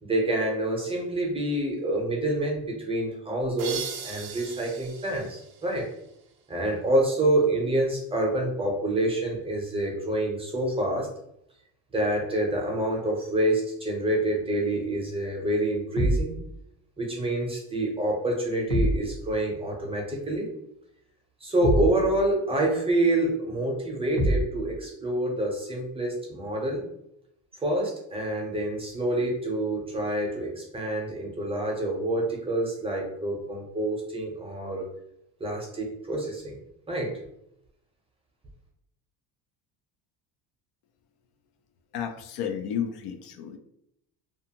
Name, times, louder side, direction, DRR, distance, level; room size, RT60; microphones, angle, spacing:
voice 1, 0.0-5.9 6.5-11.1 11.9-16.3 17.0-20.5 21.4-26.8 27.6-34.8 35.4-36.6 36.9-37.2, right 1 dB, 15° right, -1 dB, 0.6 m, -27 dB
sound 1, 3.6-6.3, right 7 dB, 60° right, 0.6 m, -39 dB
sound 2, 16.0-16.3 18.7-19.1 21.6-22.0 24.2-24.5, right 1 dB, 50° left, 1.0 m, -24 dB
voice 2, 41.9-43.6, left 8 dB, 75° left, 6 dB, 0.5 m, -32 dB
2.4 x 2.4 x 2.8 m, 0.78 s
cardioid pair, 140°, 40 cm